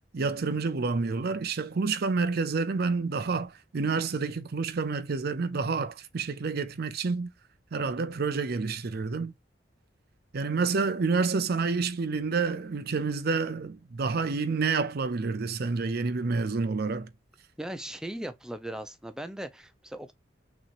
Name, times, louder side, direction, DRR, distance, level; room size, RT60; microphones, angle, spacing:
voice 1, 0.1-7.3 7.7-9.3 10.3-17.1, right 4 dB, 55° right, 0.5 m, -29 dB
voice 2, 17.6-20.1, right 1 dB, 5° right, 0.5 m, -38 dB
6.0 x 3.0 x 2.5 m
head